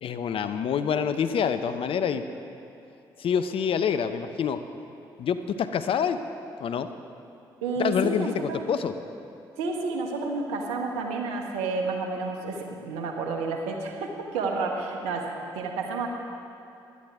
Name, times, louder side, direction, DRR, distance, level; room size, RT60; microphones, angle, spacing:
voice 1, 0.0-2.2 3.2-4.6 5.2-6.2 6.6-6.9 7.8-8.9, left 7 dB, 55° left, 10 dB, 0.7 m, -26 dB
voice 2, 7.6-8.6 9.6-15.3 15.5-16.1, right 3 dB, 75° right, 2 dB, 1.3 m, -30 dB
16.5 x 11.5 x 3.6 m, 2.7 s
hypercardioid pair, 45°, 11 cm